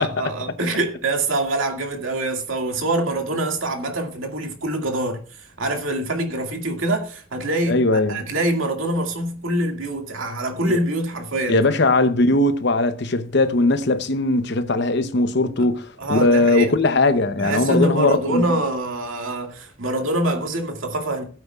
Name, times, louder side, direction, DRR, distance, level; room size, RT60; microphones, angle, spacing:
voice 1, 0.0-11.6 15.6-15.7 16.0-16.7 17.4-21.2, right 1 dB, 90° right, 2.2 m, -25 dB
voice 2, 7.7-8.3 10.7-10.8 11.5-18.6, left 2 dB, 60° left, 0.8 m, -19 dB
16.0 x 8.6 x 2.4 m
head